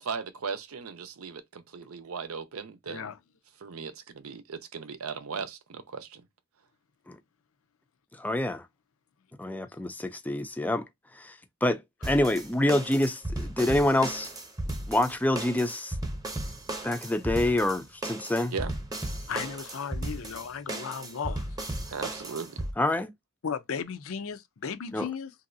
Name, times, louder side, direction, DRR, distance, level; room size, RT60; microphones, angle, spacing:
voice 1, 0.0-3.1 3.6-6.2 18.5-18.7 21.9-22.7, right 5 dB, 85° right, 0.6 m, -37 dB
voice 2, 2.9-3.2 19.3-21.5 23.4-25.3, left 6 dB, 75° left, 0.5 m, -35 dB
voice 3, 8.2-8.6 9.4-10.9 11.2-11.4 11.6-14.3 14.7-16.0 16.8-18.5 22.8-23.1 24.9-25.1, left 1 dB, 10° left, 0.4 m, -27 dB
sound 1, 12.0-22.7, right 1 dB, 20° right, 0.8 m, -35 dB
3.1 x 2.6 x 2.5 m
head